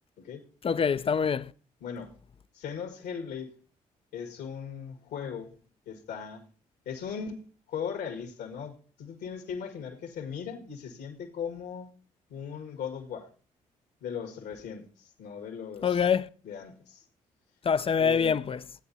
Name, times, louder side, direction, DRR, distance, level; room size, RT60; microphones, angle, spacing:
voice 1, 0.6-1.5 15.8-16.3 17.6-18.6, left 6 dB, 35° left, 0.5 m, -25 dB
voice 2, 1.8-2.1 2.5-3.6 4.1-5.5 5.9-6.5 6.9-11.9 12.3-13.3 14.0-16.1 16.4-17.0 18.0-18.4, left 7 dB, 75° left, 1.9 m, -38 dB
16.0 x 9.0 x 2.7 m
hypercardioid pair, 45°, 17 cm